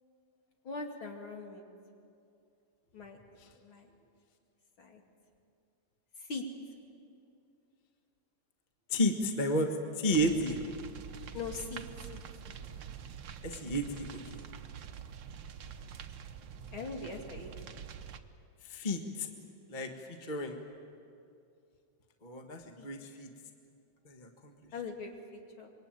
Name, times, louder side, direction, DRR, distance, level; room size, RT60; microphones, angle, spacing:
voice 1, 0.6-1.6 2.9-3.2 3.5-3.9 4.8-5.0 6.3-6.4 11.3-11.8 12.1-12.6 16.7-17.5 22.8-22.9 24.7-25.7, left 4 dB, 45° left, 2 dB, 3.2 m, -41 dB
voice 2, 8.9-10.6 13.4-14.4 18.7-19.3 19.7-20.6 22.2-23.3 24.0-24.5, equal, 25° left, 4 dB, 1.1 m, -32 dB
sound 1, 10.1-18.2, right 8 dB, 65° right, 1.1 m, -46 dB
26.5 x 23.0 x 9.1 m, 2.5 s
omnidirectional pair, 3.3 m